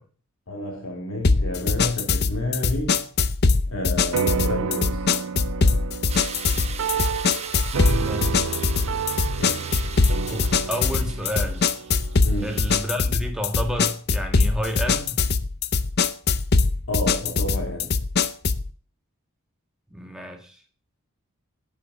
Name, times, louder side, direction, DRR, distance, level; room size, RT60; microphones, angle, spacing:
voice 1, 0.5-3.0 3.7-5.0 6.9-7.0 9.4-9.7 12.2-12.6 16.9-18.0, left 1 dB, 65° left, 1 dB, 3.3 m, -30 dB
sound 1, 1.2-18.7, left 4 dB, 50° left, 0.7 m, -22 dB
sound 2, 4.1-12.8, right 6 dB, 70° right, 0.5 m, -30 dB
sound 3, 6.1-12.8, right 5 dB, 30° right, 1.2 m, -39 dB
voice 2, 7.9-8.5 10.3-11.7 12.4-15.2 19.9-20.6, equal, 5° right, 2 dB, 1.9 m, -30 dB
12.0 x 7.4 x 5.0 m, 0.41 s
head